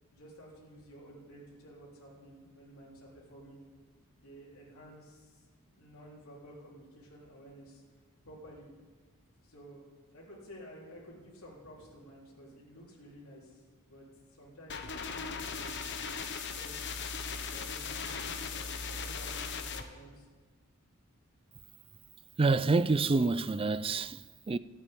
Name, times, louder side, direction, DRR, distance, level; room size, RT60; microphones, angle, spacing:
voice 1, 0.1-3.6 4.2-5.4 5.7-7.8 8.2-8.7 9.4-9.8 10.1-15.8 16.4-16.9 17.4-20.3, equal, 75° left, 3.6 m, -52 dB
sound 1, 14.7-19.8, left 5 dB, 55° left, 1.1 m, -38 dB
voice 2, 22.4-24.6, right 3 dB, 25° right, 0.4 m, -27 dB
13.5 x 8.5 x 8.7 m
head